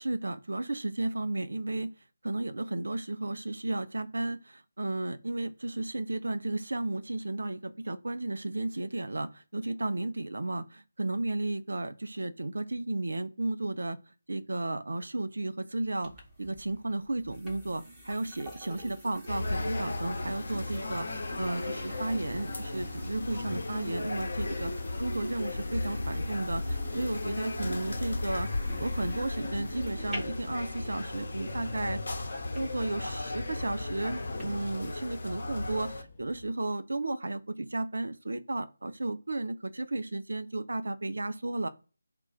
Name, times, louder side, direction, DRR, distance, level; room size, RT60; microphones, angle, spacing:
voice 1, 0.0-1.9 2.2-14.0 14.3-16.1 16.4-24.7 25.0-28.5 28.8-32.0 32.5-41.7, right 2 dB, 60° right, 0.4 m, -33 dB
sound 1, 16.0-34.4, right 1 dB, 10° right, 1.1 m, -47 dB
sound 2, 19.3-36.0, left 2 dB, 45° left, 0.9 m, -35 dB
sound 3, 22.8-36.5, left 5 dB, 20° left, 0.9 m, -52 dB
2.5 x 2.2 x 4.0 m
figure-of-eight pair, 155°, 0 cm